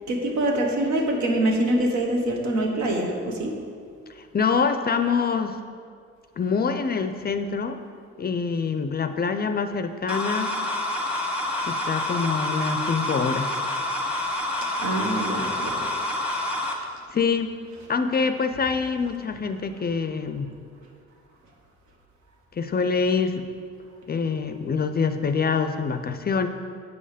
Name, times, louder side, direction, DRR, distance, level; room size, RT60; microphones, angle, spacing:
voice 1, 0.0-3.5 14.8-15.8, right 1 dB, 70° right, 1 dB, 1.5 m, -25 dB
voice 2, 4.2-5.6 6.4-7.8 8.2-10.6 11.7-13.6 17.1-17.5 17.9-20.5 22.5-23.4 24.1-26.5, left 5 dB, 30° left, 8 dB, 0.5 m, -25 dB
sound 1, 10.1-16.7, left 1 dB, 5° right, 1.3 m, -28 dB
8.0 x 5.5 x 5.0 m, 2.2 s
cardioid pair, 90°, 30 cm